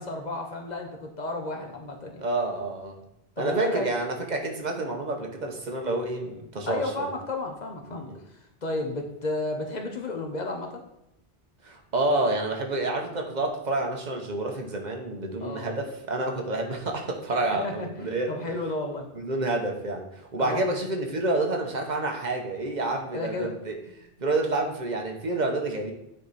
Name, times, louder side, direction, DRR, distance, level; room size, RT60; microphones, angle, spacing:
voice 1, 0.0-2.2 3.4-3.9 6.7-8.1 8.6-10.8 15.4-15.7 17.5-19.1 20.4-20.6 23.1-23.5, left 2 dB, 45° left, 3 dB, 1.0 m, -32 dB
voice 2, 2.2-3.0 3.4-7.1 7.9-8.2 11.6-18.3 19.1-23.8 24.2-25.9, right 2 dB, 45° right, 2 dB, 1.1 m, -29 dB
8.8 x 3.3 x 4.1 m, 0.82 s
omnidirectional pair, 1.1 m